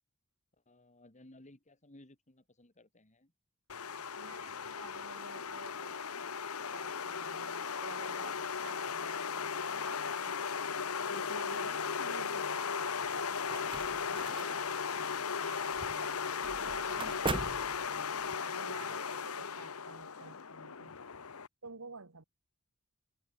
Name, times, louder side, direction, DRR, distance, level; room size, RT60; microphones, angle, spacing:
voice 1, 0.7-3.3 4.0-4.1 12.8-13.1 18.7-19.0 20.2-20.3, left 1 dB, 35° left, 2.7 m, -59 dB
sound 1, 3.7-21.5, left 6 dB, 80° left, 1.1 m, -37 dB
voice 2, 4.2-10.7 11.1-15.1 15.4-17.8 18.4-21.0 21.6-22.2, right 4 dB, 80° right, 1.8 m, -52 dB
sound 2, 13.0-18.4, right 3 dB, 25° right, 1.6 m, -42 dB
head